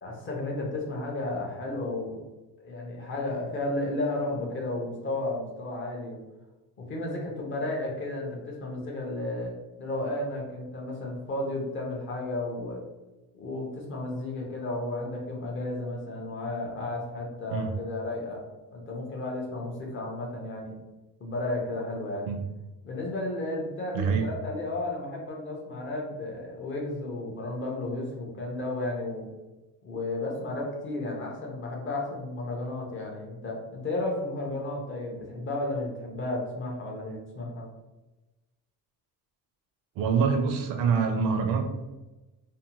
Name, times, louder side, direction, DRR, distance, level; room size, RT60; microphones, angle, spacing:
voice 1, 0.0-2.2 2.6-6.2 6.8-12.8 13.3-18.4 18.7-20.7 21.2-22.3 22.8-29.3 29.8-37.7, left 2 dB, 30° left, -1 dB, 0.5 m, -33 dB
voice 2, 23.9-24.3 40.0-41.7, right 5 dB, 60° right, 5 dB, 0.5 m, -25 dB
2.6 x 2.1 x 2.8 m, 1.1 s
cardioid pair, 165°, 38 cm